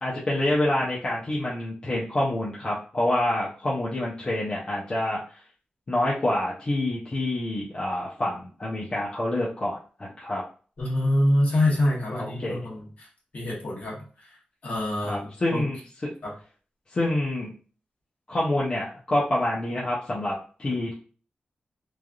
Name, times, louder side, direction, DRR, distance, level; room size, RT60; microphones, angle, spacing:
voice 1, 0.0-5.2 5.9-10.4 12.2-12.7 15.0-15.8 16.9-17.5 18.3-20.9, left 1 dB, 35° left, -6 dB, 0.6 m, -27 dB
voice 2, 10.8-13.1 13.3-14.0 14.6-15.6 16.2-16.3, left 1 dB, 55° left, -3 dB, 1.3 m, -25 dB
3.2 x 2.5 x 2.3 m, 0.40 s
wide cardioid pair, 140°, 3 cm